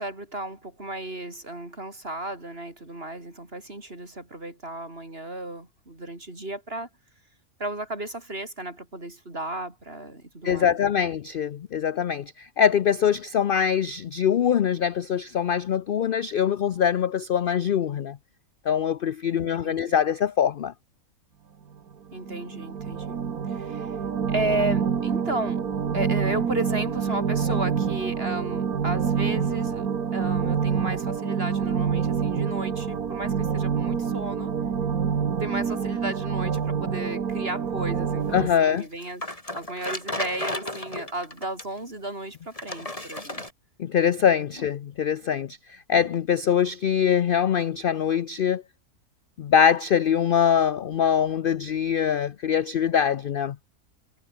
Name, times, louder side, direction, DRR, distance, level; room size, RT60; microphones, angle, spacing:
voice 1, 0.0-6.9 7.6-10.8 19.4-19.9 22.1-23.2 23.5-24.0 24.3-25.6 25.9-29.9 30.1-34.5 35.4-39.2 39.5-43.4 46.0-46.1, right 1 dB, 40° right, 5.6 m, -34 dB
voice 2, 10.4-18.2 18.7-20.7 38.3-38.9 43.8-48.6 49.4-53.6, left 8 dB, 65° left, 0.5 m, -23 dB
sound 1, 22.1-38.5, right 7 dB, 70° right, 2.0 m, -27 dB
sound 2, 38.8-41.8 42.5-43.5, left 1 dB, 20° left, 4.1 m, -33 dB
omnidirectional pair, 1.6 m